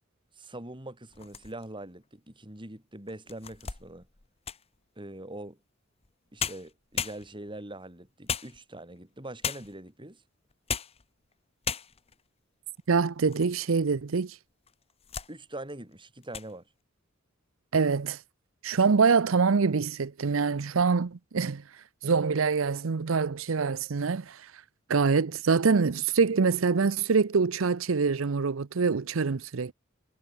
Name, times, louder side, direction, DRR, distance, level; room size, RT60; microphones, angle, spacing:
voice 1, 0.4-4.1 5.0-5.6 6.3-10.2 15.3-16.7, right 1 dB, 25° right, 3.7 m, -43 dB
sound 1, 1.1-1.8 2.4-2.5 3.1-4.8 6.0-6.1 6.4-7.6 8.3-9.0 9.4-9.9 10.5-11.0 11.3-11.4 11.6-12.2 12.8-13.6 13.9-14.0 14.7-15.3 15.7-15.9 16.2-16.5, left 7 dB, 30° left, 1.0 m, -36 dB
voice 2, 12.9-14.3 17.7-18.2 18.6-21.6 22.0-24.4 24.9-29.7, right 5 dB, 75° right, 0.6 m, -25 dB
head